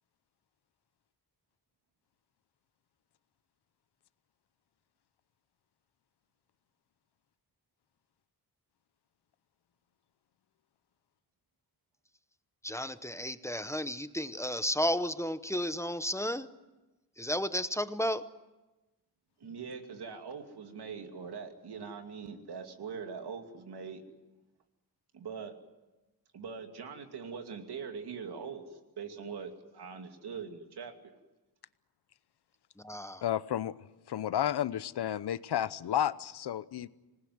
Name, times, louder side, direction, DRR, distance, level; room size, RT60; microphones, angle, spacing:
voice 1, 12.6-16.5 17.2-18.3 32.8-33.2, equal, 5° left, 12 dB, 0.8 m, -33 dB
voice 2, 19.4-24.0 25.1-25.6 26.3-31.1, right 6 dB, 85° right, 5 dB, 2.6 m, -42 dB
voice 3, 33.2-33.7 34.1-36.9, left 10 dB, 90° left, 16 dB, 0.9 m, -31 dB
26.0 x 19.5 x 9.5 m, 1.1 s
wide cardioid pair, 160°, 38 cm